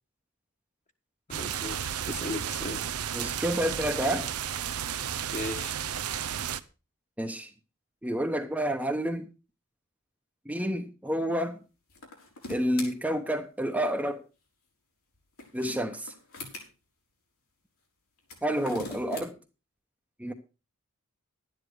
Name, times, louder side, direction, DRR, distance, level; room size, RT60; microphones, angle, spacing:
voice 1, 1.3-2.8 5.3-5.8, left 2 dB, 35° left, 1.5 m, -37 dB
sound 1, 1.3-6.6, right 9 dB, 90° right, 0.7 m, -33 dB
voice 2, 3.1-4.3 7.2-7.5 8.0-9.3 10.4-11.6 12.5-14.2 15.5-16.1 18.4-19.4 20.2-20.3, equal, 5° right, 0.9 m, -29 dB
sound 2, 11.9-12.9 15.1-16.7 18.2-19.3, left 3 dB, 80° left, 4.3 m, -41 dB
12.0 x 10.0 x 4.8 m
head